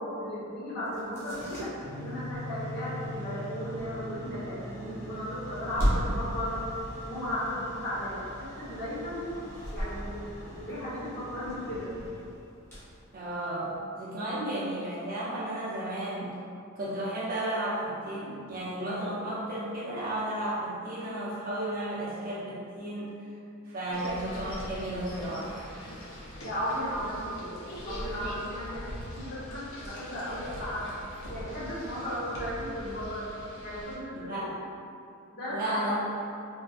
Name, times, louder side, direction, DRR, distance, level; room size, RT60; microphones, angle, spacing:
voice 1, 0.0-6.6 7.0-9.4 9.7-11.9 23.9-24.1 26.4-27.6 27.9-28.8 29.1-30.9 31.2-33.2 33.6-34.5 35.3-35.8, equal, 50° left, -9 dB, 1.0 m, -35 dB
sound 1, 0.9-13.8, equal, 10° left, 0.7 m, -38 dB
sound 2, 1.8-12.0, equal, 90° right, 0.6 m, -44 dB
voice 2, 13.1-16.3 16.8-23.4 23.6-25.6 34.1-34.6 35.5-36.2, right 1 dB, 40° right, -8 dB, 0.4 m, -33 dB
sound 3, 23.9-34.0, equal, 65° left, 0.7 m, -42 dB
3.3 x 2.6 x 2.4 m, 2.5 s
head